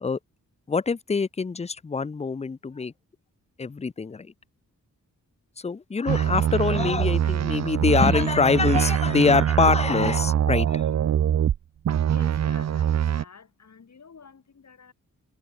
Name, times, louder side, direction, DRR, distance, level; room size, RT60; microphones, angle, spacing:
voice 1, 0.7-2.9 3.6-4.3 5.6-10.9, left 4 dB, 20° left, 0.5 m, -24 dB
sound 1, 6.1-11.6 11.8-13.2, right 10 dB, 50° right, 0.5 m, -23 dB
voice 2, 12.1-14.9, left 6 dB, 55° left, 5.8 m, -48 dB
wide cardioid pair, 110°, 33 cm